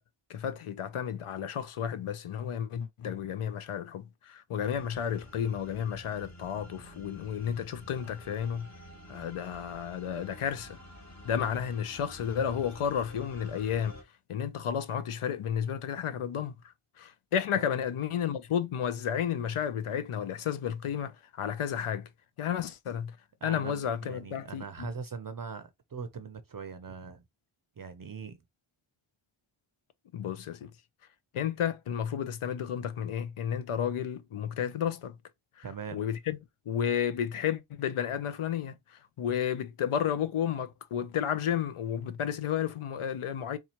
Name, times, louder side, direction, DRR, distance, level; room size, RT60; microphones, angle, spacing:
voice 1, 0.3-8.7 9.1-10.8 11.2-14.0 14.3-16.5 17.0-22.1 22.4-23.1 23.4-24.9 30.1-30.7 31.3-35.1 35.6-35.7 35.9-36.4 36.7-43.6, left 8 dB, 85° left, 0.6 m, -32 dB
sound 1, 4.6-14.0, left 1 dB, 35° left, 1.0 m, -50 dB
voice 2, 23.4-27.2 27.8-28.4 35.6-36.0, right 6 dB, 45° right, 0.5 m, -41 dB
4.2 x 2.4 x 2.9 m
wide cardioid pair, 60°, 50 cm